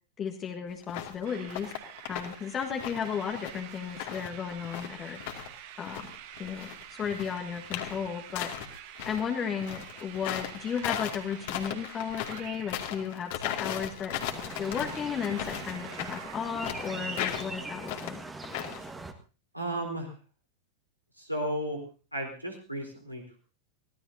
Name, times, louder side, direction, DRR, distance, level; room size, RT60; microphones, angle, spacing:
voice 1, 0.2-1.7 2.1-5.2 5.8-6.1 6.4-8.5 9.0-14.1 14.6-18.2, left 7 dB, 25° left, 2 dB, 1.6 m, -34 dB
sound 1, 0.8-1.1 1.4-2.4 2.6-5.5 5.8-9.2 9.6-18.9, left 11 dB, 50° left, 2.3 m, -37 dB
sound 2, 1.2-17.2, right 12 dB, 45° right, 1.3 m, -47 dB
sound 3, 14.1-19.1, right 3 dB, 10° right, 1.5 m, -41 dB
voice 2, 19.5-20.1 21.2-21.8 22.1-23.4, right 1 dB, 90° right, 0 dB, 4.2 m, -34 dB
24.0 x 17.0 x 2.8 m, 0.35 s
figure-of-eight pair, 90°, 0 cm